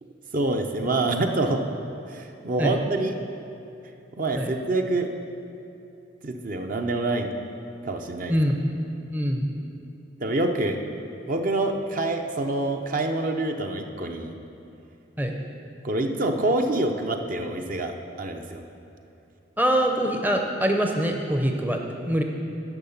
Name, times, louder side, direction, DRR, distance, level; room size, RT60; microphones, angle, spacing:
voice 1, 0.3-1.6 2.1-3.1 4.2-5.1 6.2-7.3 7.8-8.3 10.2-10.8 11.3-14.3 15.8-18.6, right 2 dB, 50° right, 4 dB, 0.7 m, -26 dB
voice 2, 8.3-8.6 9.1-9.5 15.2-15.3 19.6-22.2, equal, 10° right, 3 dB, 0.6 m, -24 dB
10.5 x 5.8 x 7.1 m, 2.7 s
head